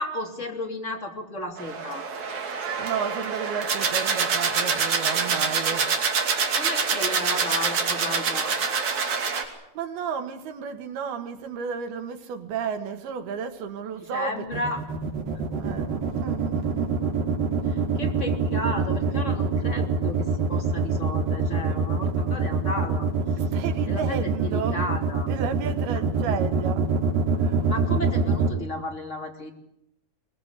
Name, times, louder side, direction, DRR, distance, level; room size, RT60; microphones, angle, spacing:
voice 1, 0.0-2.0 6.6-8.5 13.9-14.8 17.6-23.1 23.8-25.3 27.6-29.5, left 1 dB, 20° left, 2.9 m, -33 dB
sound 1, 1.6-9.4, right 5 dB, 50° right, 3.9 m, -26 dB
voice 2, 2.8-5.9 9.8-14.7 15.6-17.0 19.1-19.2 23.4-24.9 25.2-26.9 27.4-27.7, right 6 dB, 90° right, 3.7 m, -33 dB
sound 2, 14.5-28.5, right 4 dB, 70° right, 4.5 m, -24 dB
23.0 x 21.0 x 8.3 m
omnidirectional pair, 4.3 m